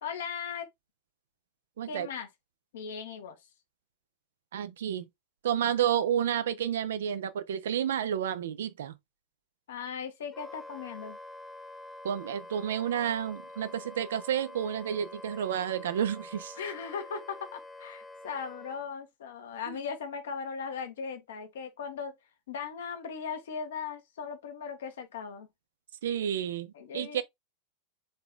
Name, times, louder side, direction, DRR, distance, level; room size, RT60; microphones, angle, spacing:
voice 1, 0.0-0.7 1.9-2.3 2.7-3.4 9.7-11.2 16.5-22.1 22.5-25.5 26.7-27.2, left 6 dB, 60° left, 1.1 m, -38 dB
voice 2, 4.5-5.0 5.4-8.9 12.0-16.5 19.7-19.8 26.0-27.2, right 9 dB, 60° right, 0.5 m, -30 dB
Wind instrument woodwind instrument, 10.3-18.8, left 1 dB, 5° left, 0.7 m, -46 dB
4.1 x 3.3 x 3.6 m
figure-of-eight pair, 90°, 0 cm